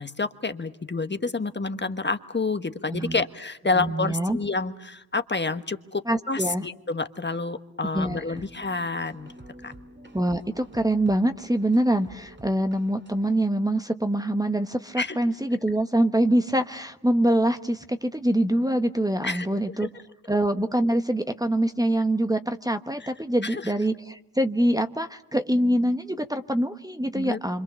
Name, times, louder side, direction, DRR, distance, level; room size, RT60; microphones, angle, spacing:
voice 1, 0.0-9.3 9.6-9.7 15.0-15.2 19.2-19.5 19.8-19.9 23.0-23.1 23.4-23.7 27.1-27.4, left 3 dB, 30° left, 9 dB, 1.3 m, -29 dB
voice 2, 2.9-3.2 3.8-4.4 6.1-6.6 7.9-8.4 10.1-19.9 20.3-27.6, right 1 dB, 10° right, 8 dB, 1.1 m, -24 dB
sound 1, 8.0-13.4, right 1 dB, 30° right, 2.2 m, -49 dB
26.5 x 26.0 x 6.9 m, 0.89 s
cardioid pair, 60°, 37 cm